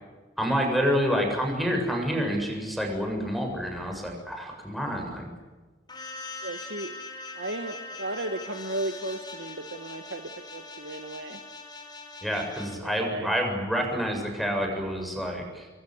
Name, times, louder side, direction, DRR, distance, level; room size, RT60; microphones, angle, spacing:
voice 1, 0.4-5.3 12.2-15.7, equal, ahead, 2 dB, 7.3 m, -28 dB
sound 1, 5.9-12.8, left 3 dB, 25° left, 5.2 m, -41 dB
voice 2, 6.4-6.9 7.3-11.4 12.7-13.3, right 2 dB, 75° right, 7 dB, 1.7 m, -35 dB
29.0 x 23.5 x 8.1 m, 1.3 s
head